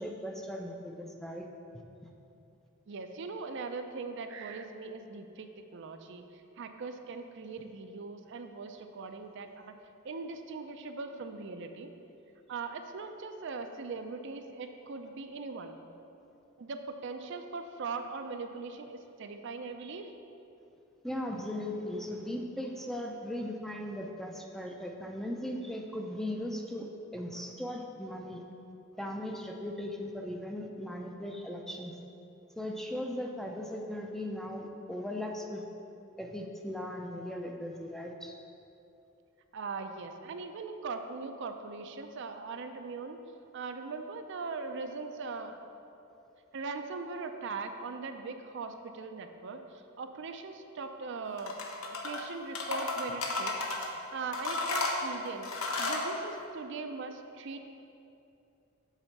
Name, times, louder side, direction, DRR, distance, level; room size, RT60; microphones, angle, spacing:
voice 1, 0.0-1.5 2.0-2.1 21.0-28.4 29.0-32.0 32.6-35.6 36.2-38.3, left 1 dB, ahead, 1 dB, 0.5 m, -38 dB
voice 2, 2.9-6.2 6.6-9.7 10.0-11.9 12.5-15.8 16.6-20.1 39.5-43.2 43.5-45.7 46.5-51.5 51.9-53.5 53.9-57.6, right 4 dB, 60° right, 6 dB, 0.4 m, -40 dB
sound 1, 51.4-52.2 52.5-53.9 54.3-56.1, left 3 dB, 85° left, 0.9 m, -33 dB
7.3 x 4.3 x 6.5 m, 2.7 s
head